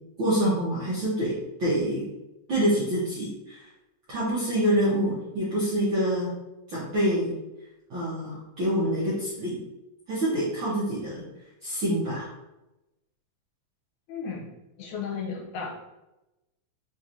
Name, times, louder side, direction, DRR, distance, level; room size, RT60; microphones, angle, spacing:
voice 1, 0.2-2.1 2.5-3.7 4.1-6.3 6.7-7.3 7.9-9.6 10.1-11.2 11.6-12.3, equal, 65° right, -10 dB, 1.2 m, -26 dB
voice 2, 14.1-14.5 14.8-15.7, left 5 dB, 75° left, 0 dB, 2.1 m, -34 dB
4.8 x 2.9 x 2.6 m, 0.97 s
omnidirectional pair, 3.6 m